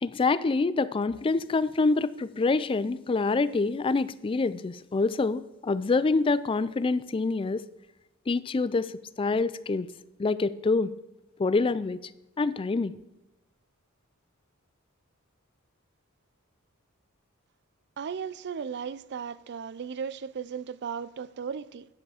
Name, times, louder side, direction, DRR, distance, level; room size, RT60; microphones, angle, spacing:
voice 1, 0.0-7.7 8.3-9.9 10.2-10.9 11.4-12.1 12.4-12.9, left 3 dB, 25° left, 0.3 m, -26 dB
voice 2, 18.0-21.9, right 6 dB, 50° right, 0.4 m, -36 dB
10.5 x 7.7 x 4.9 m
head